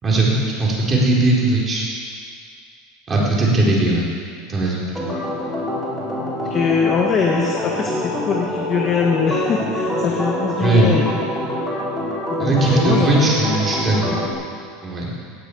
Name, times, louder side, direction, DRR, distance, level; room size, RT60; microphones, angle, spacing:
voice 1, 0.0-1.8 3.1-4.1 4.5-4.8 10.6-10.9 12.4-14.1 14.8-15.1, right 2 dB, 20° right, -4 dB, 4.3 m, -18 dB
Organ, 5.0-14.3, equal, ahead, 4.5 m, -25 dB
voice 2, 6.5-11.1 12.3-13.6, left 5 dB, 25° left, 0 dB, 1.5 m, -22 dB
17.5 x 8.6 x 8.5 m, 2.1 s
supercardioid pair, 150°, 0 cm